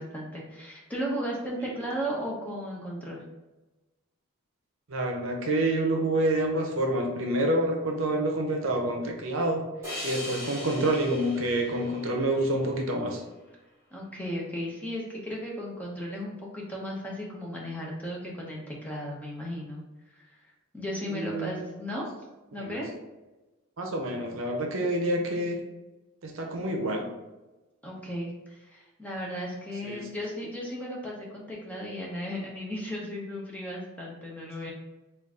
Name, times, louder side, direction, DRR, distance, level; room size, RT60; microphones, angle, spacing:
voice 1, 0.0-3.2 13.9-19.8 20.7-22.0 22.5-22.9 27.8-34.7, equal, 5° left, -3 dB, 0.7 m, -35 dB
voice 2, 4.9-9.6 10.0-13.2 21.1-21.6 22.6-22.8 23.8-25.6 26.2-27.0 29.8-30.1, right 1 dB, 65° right, 2 dB, 0.6 m, -27 dB
sound 1, 9.8-13.1, left 1 dB, 10° right, 1.3 m, -40 dB
3.8 x 2.4 x 3.5 m, 1.1 s
head